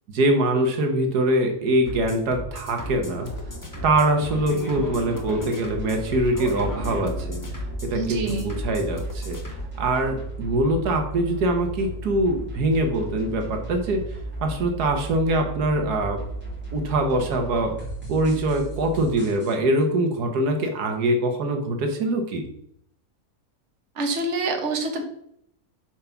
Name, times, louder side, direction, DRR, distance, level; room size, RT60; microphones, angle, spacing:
voice 1, 0.1-3.3 3.8-7.4 7.8-9.4 9.8-14.0 14.4-16.2 16.7-17.7 18.1-22.5, right 1 dB, 80° right, 4 dB, 1.7 m, -23 dB
sound 1, 1.9-9.7, left 1 dB, 15° left, 0.9 m, -35 dB
sound 2, 3.2-19.5, left 2 dB, 5° right, 3.1 m, -41 dB
sound 3, 5.7-19.0, right 3 dB, 60° left, 1.6 m, -36 dB
voice 2, 7.9-8.5 24.0-25.1, right 2 dB, 50° right, 3 dB, 1.5 m, -26 dB
7.4 x 4.7 x 5.8 m, 0.70 s
omnidirectional pair, 1.6 m